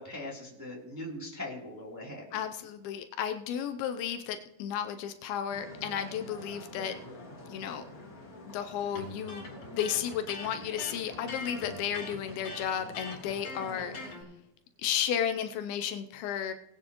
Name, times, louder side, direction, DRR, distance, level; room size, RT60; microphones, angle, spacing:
voice 1, 0.0-2.2, left 1 dB, 5° right, -3 dB, 2.2 m, -40 dB
voice 2, 2.3-7.0 7.5-7.8 8.4-9.5 9.7-14.2 14.8-16.5, left 9 dB, 80° left, 8 dB, 2.5 m, -33 dB
sound 1, 5.5-14.1, left 1 dB, 30° left, 1.8 m, -48 dB
Electric guitar, 8.9-14.2, left 3 dB, 45° left, 3.9 m, -42 dB
20.0 x 9.5 x 3.0 m, 0.85 s
omnidirectional pair, 4.5 m